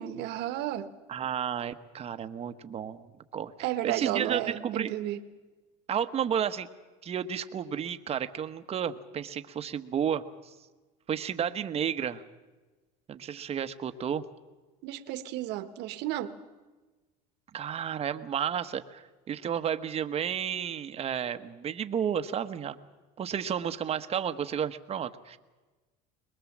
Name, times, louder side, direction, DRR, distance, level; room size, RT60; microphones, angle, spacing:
voice 1, 0.0-0.9 3.6-5.2 14.8-16.4, right 13 dB, 60° right, 1.4 m, -33 dB
voice 2, 1.1-3.1 3.3-4.9 5.9-6.7 7.0-10.5 11.1-12.2 13.1-14.2 17.5-22.8 23.2-25.4, right 8 dB, 30° right, 1.1 m, -32 dB
22.5 x 21.0 x 7.4 m
supercardioid pair, 115°, 19 cm